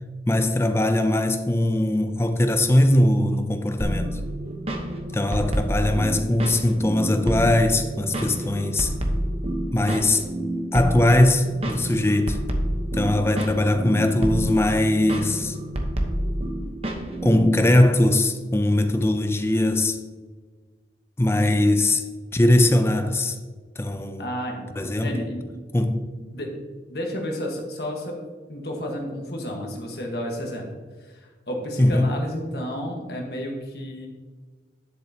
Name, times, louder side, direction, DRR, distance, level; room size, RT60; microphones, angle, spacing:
voice 1, 0.3-4.2 5.1-8.9 9.7-10.2 10.7-12.4 12.9-15.6 17.2-20.0 21.2-22.0 22.3-23.4 23.8-24.3 24.8-25.2 25.7-26.1 31.8-32.2, left 1 dB, 15° left, 0.4 m, -20 dB
sound 1, 3.8-17.7, right 1 dB, 35° right, 1.0 m, -28 dB
voice 2, 24.2-24.6 25.0-25.4 26.3-26.6 26.9-28.2 28.5-30.7 31.0-34.1, equal, 60° left, 1.4 m, -31 dB
10.5 x 7.6 x 2.8 m
head